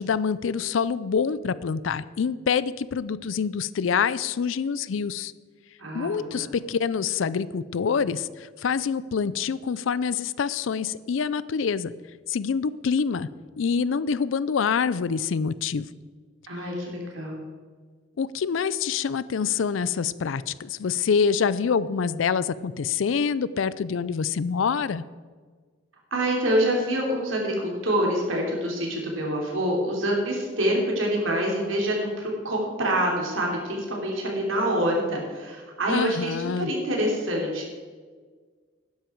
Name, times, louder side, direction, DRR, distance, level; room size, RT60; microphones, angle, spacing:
voice 1, 0.0-5.3 5.9-11.9 12.3-13.3 13.6-15.9 18.2-25.0 35.9-36.7, left 6 dB, 80° left, 17 dB, 0.4 m, -26 dB
voice 2, 5.8-6.4 16.5-17.4 26.1-37.7, right 1 dB, 90° right, -1 dB, 3.3 m, -26 dB
12.5 x 10.5 x 4.6 m, 1.5 s
head